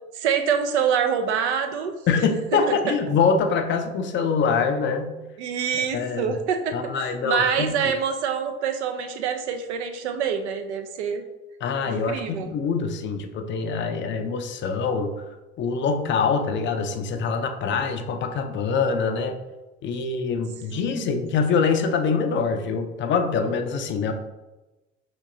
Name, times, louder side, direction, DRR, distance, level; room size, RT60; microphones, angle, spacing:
voice 1, 0.1-1.9 2.7-3.2 5.4-11.2 11.9-12.5 20.7-21.1, right 7 dB, 65° right, 6 dB, 0.6 m, -26 dB
voice 2, 2.1-5.2 5.9-6.3 6.7-7.7 11.6-15.1 15.6-19.4 19.8-24.1, left 5 dB, 35° left, 6 dB, 0.5 m, -24 dB
6.6 x 2.8 x 2.6 m, 1.1 s
figure-of-eight pair, 65°, 36 cm